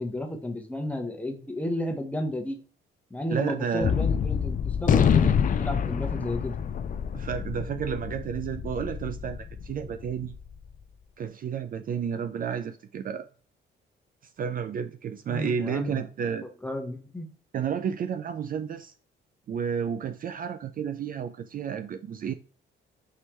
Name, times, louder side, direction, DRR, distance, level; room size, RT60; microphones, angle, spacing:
voice 1, 0.0-2.6 3.1-5.3 5.6-6.5 15.3-16.0 16.6-17.3, left 1 dB, 5° left, 0.9 m, -32 dB
voice 2, 3.3-3.9 7.1-10.3 11.2-13.3 14.4-16.5 17.5-18.9 19.5-22.3, right 7 dB, 45° right, 0.4 m, -31 dB
Gunshot gunfire, 3.8-10.4, left 7 dB, 45° left, 0.4 m, -26 dB
4.6 x 3.2 x 3.0 m
cardioid pair, 90°, 20 cm